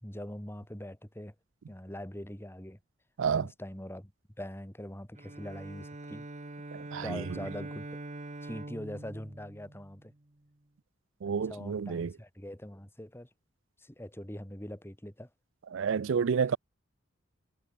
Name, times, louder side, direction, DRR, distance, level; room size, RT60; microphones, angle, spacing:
voice 1, 0.0-1.3 1.7-2.8 3.3-4.1 4.4-6.3 7.0-8.0 8.4-10.1 11.3-13.3 13.8-15.3, left 1 dB, 10° left, 2.7 m, -42 dB
Bowed string instrument, 5.2-10.4, right 2 dB, 35° right, 1.3 m, -44 dB
voice 2, 6.7-7.4 11.2-12.1 15.7-16.6, right 6 dB, 70° right, 0.4 m, -30 dB
head